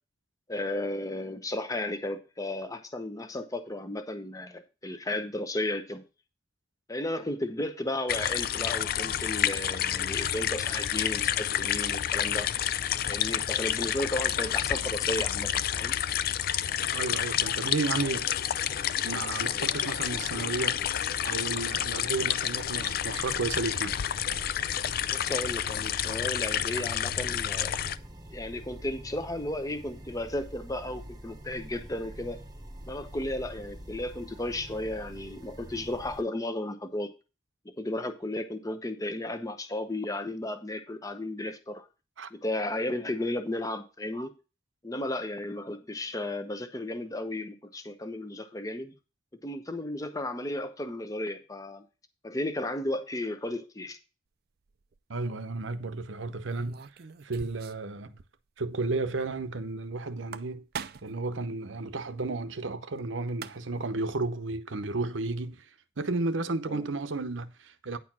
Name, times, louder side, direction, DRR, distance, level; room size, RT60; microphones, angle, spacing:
voice 1, 0.5-6.0 6.9-12.5 13.1-16.0 19.4-19.5 25.1-27.8 28.3-32.4 32.9-37.1 37.6-41.9 42.3-44.3 44.8-48.9 49.4-51.8 52.2-54.0 66.7-66.8, left 1 dB, 20° left, 0.8 m, -34 dB
sound 1, 8.1-28.0, left 10 dB, 50° left, 0.4 m, -29 dB
voice 2, 16.9-18.3 19.0-20.8 21.2-24.0 42.2-42.3 55.1-56.9 57.2-58.2 58.6-60.7 61.0-65.7 66.0-68.0, right 3 dB, 75° right, 0.8 m, -33 dB
sound 2, 22.5-36.2, right 1 dB, 20° right, 1.0 m, -45 dB
sound 3, 54.7-55.0 56.5-57.9 58.2-58.3 58.6-58.7 60.1-61.2 63.0-63.1 63.3-63.9, right 6 dB, 50° right, 0.5 m, -42 dB
9.6 x 4.5 x 6.0 m
head